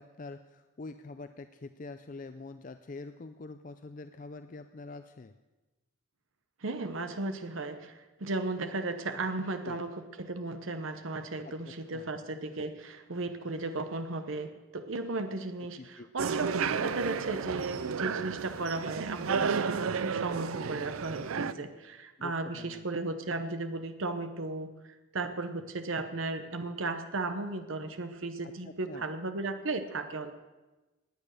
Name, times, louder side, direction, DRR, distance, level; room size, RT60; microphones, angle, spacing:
voice 1, 0.0-5.3 9.7-9.8 11.6-12.1 15.8-16.1 22.2-22.3 22.6-22.8 28.6-29.1, left 3 dB, 40° left, 10 dB, 0.4 m, -45 dB
voice 2, 6.6-30.3, right 2 dB, 75° right, 8 dB, 0.9 m, -35 dB
sound 1, 16.2-21.5, right 6 dB, 90° right, 0.5 m, -32 dB
18.5 x 8.8 x 6.5 m, 1.1 s
head